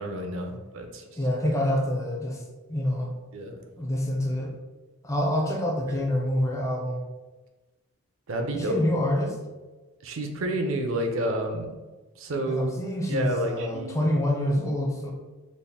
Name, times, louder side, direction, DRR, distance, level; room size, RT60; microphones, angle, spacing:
voice 1, 0.0-1.0 3.3-3.6 5.9-6.0 8.3-8.8 10.0-11.8 12.2-12.7 13.1-14.1, right 1 dB, 65° right, 4 dB, 0.5 m, -30 dB
voice 2, 1.2-2.4 2.7-3.1 3.8-4.5 5.0-7.0 8.5-9.4 12.5-15.1, left 1 dB, 15° left, -1 dB, 0.5 m, -26 dB
4.1 x 2.1 x 3.4 m, 1.2 s
head